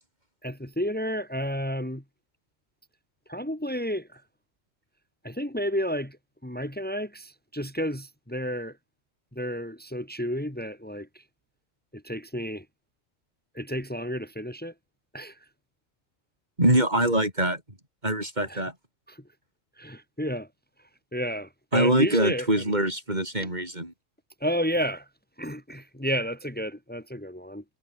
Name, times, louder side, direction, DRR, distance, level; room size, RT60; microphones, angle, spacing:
voice 1, 0.4-2.0 3.3-4.2 5.2-6.2 6.4-8.8 9.3-11.2 11.9-12.6 13.5-14.7 15.1-15.4 18.5-18.6 19.1-19.2 19.8-20.5 21.1-22.5 23.3-23.5 24.4-25.1 25.4-27.6, equal, 5° left, 3.3 m, -31 dB
voice 2, 16.6-17.6 18.0-18.7 21.7-23.9, right 1 dB, 30° right, 6.5 m, -24 dB
omnidirectional pair, 1.4 m